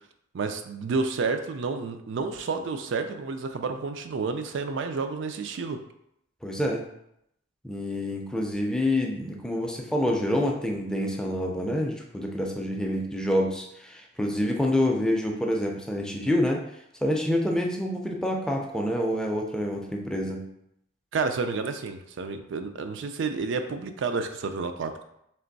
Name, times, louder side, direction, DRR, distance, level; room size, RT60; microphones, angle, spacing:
voice 1, 0.3-5.8 21.1-25.0, right 4 dB, 65° right, 7 dB, 0.4 m, -30 dB
voice 2, 6.4-6.8 7.6-16.6 17.0-20.4, left 1 dB, 5° left, 0 dB, 0.4 m, -27 dB
3.4 x 3.0 x 3.9 m, 0.78 s
head